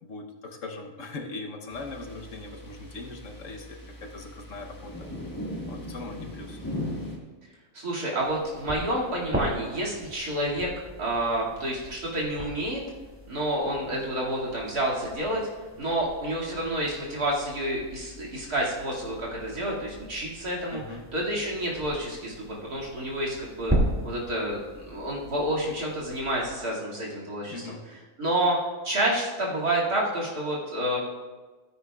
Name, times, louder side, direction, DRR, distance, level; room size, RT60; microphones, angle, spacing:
voice 1, 0.0-4.9 5.7-6.6 20.7-21.1 27.5-27.8, left 3 dB, 60° left, 2 dB, 1.3 m, -40 dB
sound 1, 1.7-7.2, left 1 dB, 15° left, 1.3 m, -38 dB
voice 2, 7.7-10.7 11.0-12.8 13.3-15.4 15.8-20.8 21.1-23.7 24.0-24.6 24.9-27.8 28.2-28.6 28.8-31.0, right 1 dB, 85° right, -5 dB, 2.8 m, -29 dB
sound 2, 8.2-26.5, right 1 dB, 10° right, 2.1 m, -37 dB
15.5 x 9.6 x 2.4 m, 1.3 s
omnidirectional pair, 1.6 m